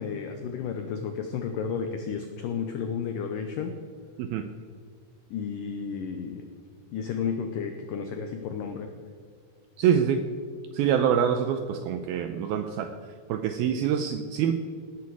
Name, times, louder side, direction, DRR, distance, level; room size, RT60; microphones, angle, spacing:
voice 1, 0.0-3.8 5.3-6.5 6.9-8.9, left 6 dB, 85° left, 6 dB, 1.9 m, -32 dB
voice 2, 9.8-10.3 10.7-13.0 13.3-14.6, right 8 dB, 85° right, 8 dB, 2.2 m, -25 dB
19.0 x 10.5 x 4.8 m, 2.1 s
omnidirectional pair, 5.1 m